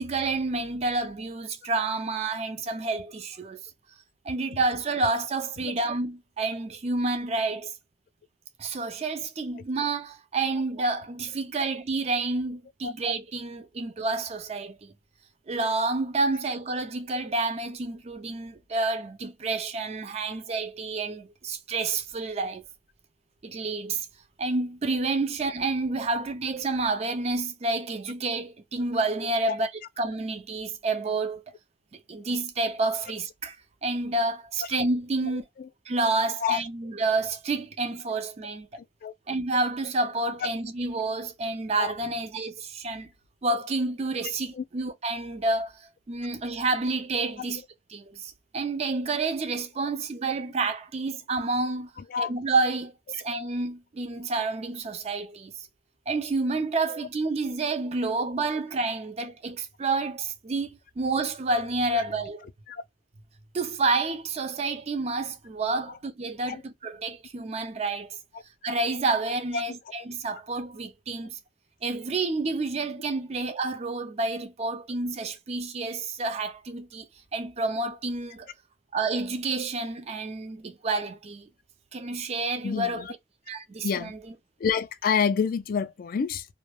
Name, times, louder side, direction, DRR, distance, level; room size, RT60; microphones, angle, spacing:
voice 1, 0.0-3.6 4.3-7.7 8.6-14.9 15.5-22.6 23.4-24.1 24.4-29.7 30.0-31.4 32.1-33.6 33.8-35.4 35.9-38.7 39.3-43.1 43.4-45.7 46.1-47.6 47.9-51.9 52.2-55.5 56.1-60.7 61.0-62.5 63.5-68.2 68.6-71.4 71.8-77.1 77.3-78.5 78.9-81.5 81.9-83.1 83.5-84.3, right 3 dB, 35° right, 0.4 m, -29 dB
voice 2, 35.3-35.7 36.4-36.6 39.0-39.1 41.8-41.9 44.5-44.6 52.1-52.3 61.9-62.0 62.7-62.8 66.5-66.6 82.6-82.9 83.8-84.1 84.6-86.5, left 6 dB, 45° left, 0.3 m, -28 dB
2.2 x 2.1 x 3.1 m
head